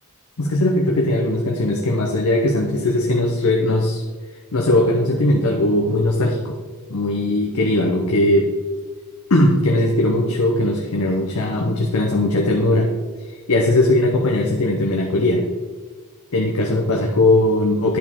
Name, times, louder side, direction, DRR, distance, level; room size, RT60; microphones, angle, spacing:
voice 1, 0.4-4.0 4.5-6.6 6.9-8.5 9.3-12.9 13.2-15.4 16.3-18.0, left 1 dB, 70° left, 0 dB, 0.8 m, -19 dB
10.5 x 4.8 x 3.6 m, 1.4 s
head